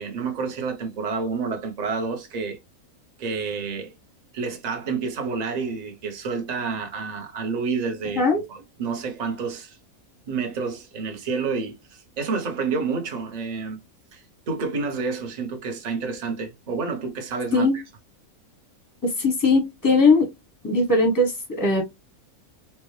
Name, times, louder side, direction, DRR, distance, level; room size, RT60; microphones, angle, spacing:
voice 1, 0.0-2.6 3.2-3.9 4.3-8.2 8.5-9.8 10.3-13.8 14.1-17.8, right 4 dB, 35° right, 0.7 m, -29 dB
voice 2, 19.0-20.3 20.6-21.9, left 3 dB, 20° left, 0.7 m, -20 dB
4.3 x 2.2 x 3.1 m
omnidirectional pair, 1.5 m